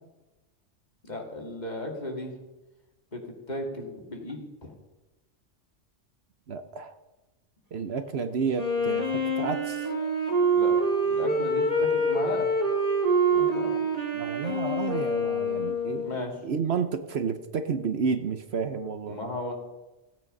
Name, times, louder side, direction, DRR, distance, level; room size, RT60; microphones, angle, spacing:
voice 1, 1.0-2.4 3.1-3.2 3.5-4.7 10.5-10.7 11.1-12.5 13.3-13.7 16.0-16.3 19.0-19.5, left 1 dB, 35° left, 1 dB, 2.4 m, -35 dB
voice 2, 6.5-6.9 7.7-9.9 13.4-13.9 14.1-19.2, right 5 dB, 60° right, 9 dB, 1.0 m, -31 dB
Wind instrument woodwind instrument, 8.5-16.2, right 1 dB, 30° right, 2.4 m, -26 dB
16.0 x 8.8 x 5.3 m, 1.1 s
omnidirectional pair, 1.2 m